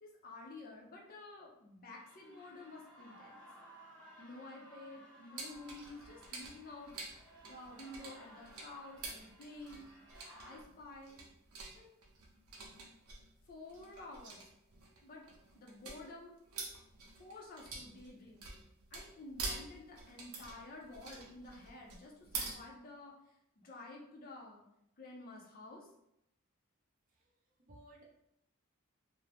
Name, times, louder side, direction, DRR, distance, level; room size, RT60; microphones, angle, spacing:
voice 1, 0.0-3.5 4.2-6.9 7.4-9.9 10.4-11.2 11.8-11.9 13.5-14.4 15.0-15.3 15.5-16.4 17.2-18.5 18.9-23.1 23.6-24.6 25.0-25.9, left 2 dB, 45° left, -1 dB, 0.5 m, -51 dB
sound 1, 1.9-10.6, equal, 5° left, 0.8 m, -58 dB
sound 2, 5.4-22.5, right 3 dB, 90° right, 0.6 m, -47 dB
voice 2, 27.1-28.0, right 1 dB, 40° right, -3 dB, 0.6 m, -60 dB
2.5 x 2.0 x 3.2 m, 0.80 s
head